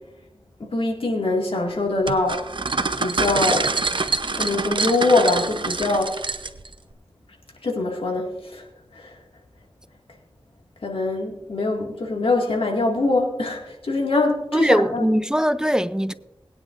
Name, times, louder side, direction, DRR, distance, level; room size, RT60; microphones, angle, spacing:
voice 1, 0.6-2.4 3.0-3.7 4.4-6.1 7.6-8.7 8.9-9.2 10.8-15.1, left 2 dB, 90° left, 2.2 m, -23 dB
sound 1, 2.1-6.7, right 3 dB, 60° right, 0.8 m, -25 dB
voice 2, 14.5-16.1, equal, 10° right, 0.6 m, -20 dB
20.5 x 9.7 x 2.6 m
wide cardioid pair, 45°, 9 cm